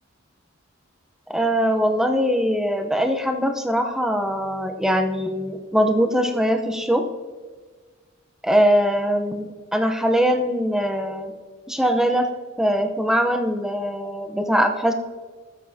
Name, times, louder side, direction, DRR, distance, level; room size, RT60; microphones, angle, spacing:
voice 1, 1.3-7.0 8.4-11.3 11.7-12.3 12.6-14.9, equal, 5° right, 5 dB, 0.7 m, -21 dB
19.0 x 7.3 x 2.8 m, 1.4 s
head